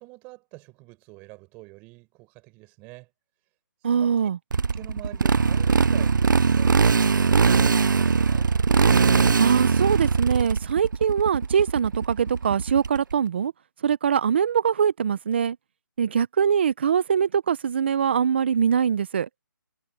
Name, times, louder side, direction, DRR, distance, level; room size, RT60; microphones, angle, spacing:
voice 1, 0.0-3.1 3.8-4.1 4.7-8.5, right 24 dB, 15° right, 4.7 m, -45 dB
voice 2, 3.8-4.4 9.4-13.5 13.8-15.6 16.0-19.3, right 7 dB, 30° right, 0.7 m, -23 dB
Motorcycle, 4.5-13.1, right 5 dB, 65° right, 0.8 m, -21 dB
hypercardioid pair, 170°, 11 cm